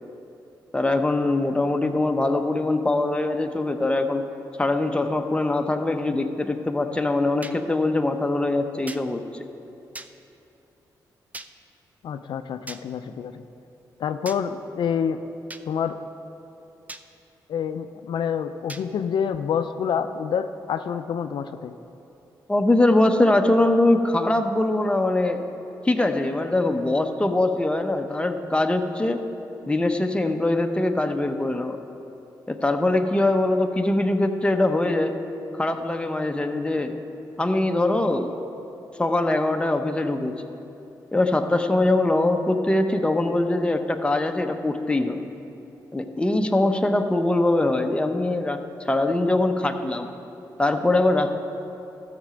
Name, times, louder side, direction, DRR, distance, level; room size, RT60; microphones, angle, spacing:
voice 1, 0.7-4.2 4.6-9.4 22.5-25.4 25.8-29.2 29.7-31.8 32.5-35.2 35.5-37.0 37.4-38.4 39.0-40.4 41.1-45.3 45.9-48.6 48.8-50.1 50.6-51.3, left 2 dB, 15° left, 5 dB, 0.8 m, -22 dB
sound 1, 7.4-7.6 8.9-9.0 9.9-10.1 11.3-11.5 12.7-12.8 14.2-14.4 15.5-15.6 16.9-17.0 18.7-18.8, right 2 dB, 20° right, 0.5 m, -38 dB
voice 2, 12.0-13.4 14.0-15.2 15.7-15.9 17.5-21.7, left 7 dB, 70° left, 9 dB, 0.4 m, -27 dB
13.5 x 6.7 x 5.1 m, 2.9 s
cardioid pair, 65°, 8 cm